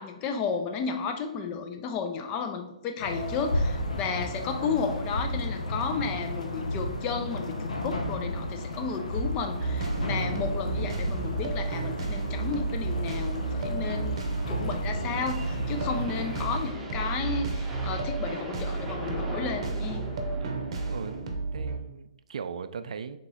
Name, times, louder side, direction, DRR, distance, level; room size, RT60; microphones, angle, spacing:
voice 1, 0.0-20.1, left 5 dB, 25° left, 6 dB, 0.5 m, -33 dB
sound 1, 3.0-16.7, left 1 dB, 85° left, 0.7 m, -33 dB
sound 2, 9.6-21.8, right 3 dB, 55° right, 0.8 m, -32 dB
sound 3, 12.9-21.2, right 1 dB, 10° right, 0.8 m, -42 dB
voice 2, 20.9-23.2, right 6 dB, 70° right, 11 dB, 0.3 m, -39 dB
3.7 x 2.9 x 4.0 m, 0.93 s
hypercardioid pair, 140°, 4 cm